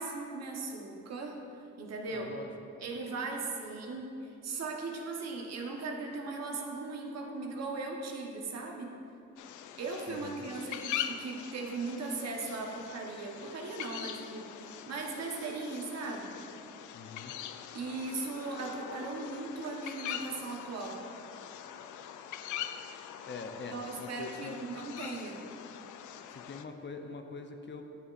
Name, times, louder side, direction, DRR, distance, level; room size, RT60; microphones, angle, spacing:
voice 1, 0.0-2.3 2.8-9.0 9.8-16.3 17.7-21.0 23.7-25.6, right 3 dB, 60° right, 1 dB, 1.2 m, -38 dB
voice 2, 2.1-2.5 10.1-10.4 16.9-17.3 23.3-24.6 26.3-27.8, left 4 dB, 40° left, 5 dB, 0.6 m, -44 dB
sound 1, 9.4-26.6, left 10 dB, 80° left, 0.4 m, -43 dB
11.0 x 6.6 x 2.5 m, 2.7 s
cardioid pair, 90°, 30 cm